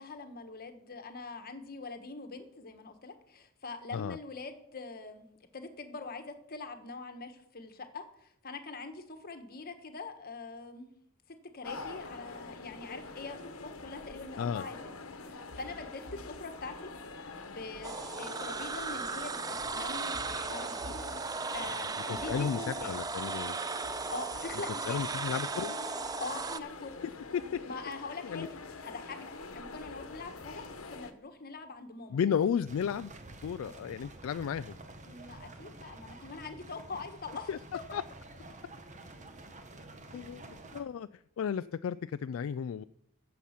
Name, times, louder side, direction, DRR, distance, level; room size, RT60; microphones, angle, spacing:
voice 1, 0.0-5.3 5.5-10.9 11.3-14.8 15.3-20.2 20.5-20.9 21.2-22.9 24.1-25.1 26.2-27.0 27.6-28.6 28.8-32.2 35.1-38.0, left 3 dB, 50° left, 7 dB, 1.3 m, -43 dB
sound 1, 11.6-31.1, left 3 dB, 85° left, 1.1 m, -45 dB
sound 2, 17.8-26.6, right 4 dB, 20° right, 0.4 m, -36 dB
voice 2, 22.1-23.6 24.9-25.7 27.3-27.6 28.2-28.5 32.1-33.1 33.4-34.7 37.5-37.6 37.9-38.0 40.1-42.8, left 7 dB, 70° left, 13 dB, 0.3 m, -33 dB
sound 3, 32.6-40.8, right 2 dB, 35° right, 1.2 m, -49 dB
14.5 x 7.0 x 5.8 m, 0.76 s
head